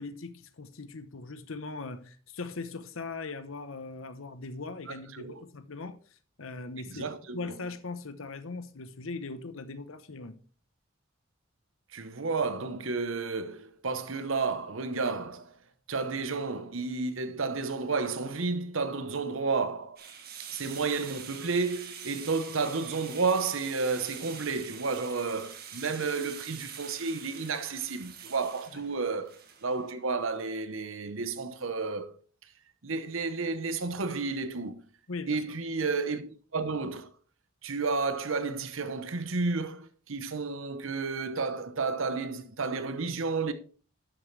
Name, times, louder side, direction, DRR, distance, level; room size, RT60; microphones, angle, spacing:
voice 1, 0.0-6.0 6.4-7.1 7.3-10.3 28.7-28.8 35.1-35.4, left 3 dB, 85° left, 0.9 m, -40 dB
voice 2, 4.9-5.4 6.9-7.5 11.9-15.5 15.9-20.1 20.5-29.3 29.6-32.1 32.8-34.8 35.3-37.1 37.6-43.5, right 4 dB, 80° right, 1.0 m, -31 dB
sound 1, 20.0-29.9, right 7 dB, 45° right, 1.5 m, -45 dB
11.0 x 7.4 x 3.3 m
head